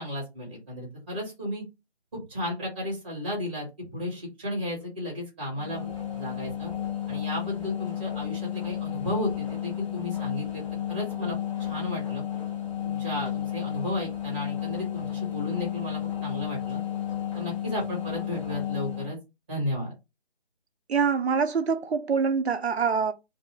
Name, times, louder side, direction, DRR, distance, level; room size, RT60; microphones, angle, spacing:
voice 1, 0.0-1.6 2.1-6.7 7.1-10.6 10.9-12.2 12.8-16.8 17.3-19.2 19.5-19.9, left 1 dB, 10° right, 0.7 m, -34 dB
sound 1, 5.5-19.1, left 10 dB, 30° left, 0.8 m, -32 dB
voice 2, 20.9-23.1, right 5 dB, 70° right, 0.5 m, -25 dB
2.6 x 2.4 x 3.0 m
figure-of-eight pair, 155°, 33 cm